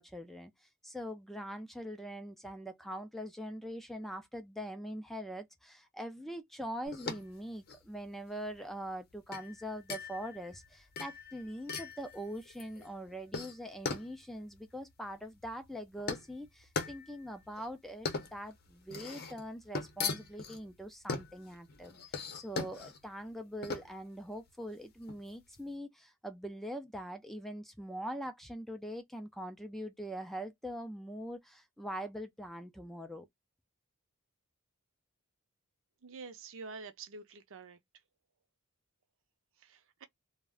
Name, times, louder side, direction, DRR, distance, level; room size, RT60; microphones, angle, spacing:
voice 1, 0.0-33.3, equal, ahead, 0.3 m, -43 dB
sound 1, 6.8-25.6, left 4 dB, 45° left, 0.6 m, -41 dB
voice 2, 36.0-37.8 39.6-40.0, right 4 dB, 60° right, 0.5 m, -47 dB
2.3 x 2.1 x 3.4 m
head